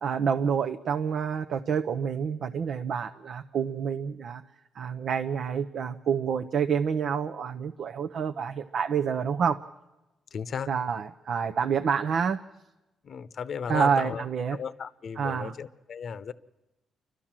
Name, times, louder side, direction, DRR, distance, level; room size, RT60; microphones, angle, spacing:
voice 1, 0.0-4.4 4.7-9.6 10.7-12.4 13.7-14.6 15.2-15.5, right 7 dB, 65° right, 7 dB, 0.7 m, -28 dB
voice 2, 10.3-10.7 13.0-14.2 14.5-16.3, left 7 dB, 55° left, 15 dB, 0.8 m, -35 dB
30.0 x 12.5 x 7.4 m, 1.0 s
cardioid pair, 100°, 0 cm